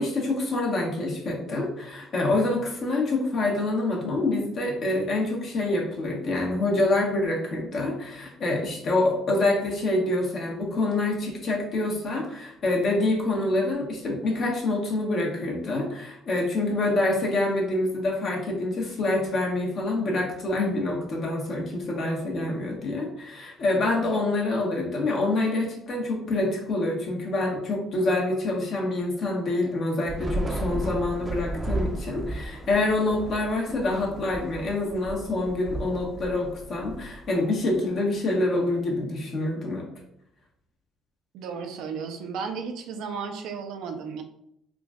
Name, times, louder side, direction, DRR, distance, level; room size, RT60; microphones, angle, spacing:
voice 1, 0.0-39.9, left 2 dB, 55° left, -1 dB, 1.1 m, -26 dB
Thunder / Rain, 30.1-37.6, right 1 dB, 20° right, 0.6 m, -34 dB
voice 2, 41.3-44.2, right 5 dB, 75° right, 6 dB, 0.4 m, -34 dB
3.7 x 2.5 x 2.3 m, 0.74 s
supercardioid pair, 65°, 0 cm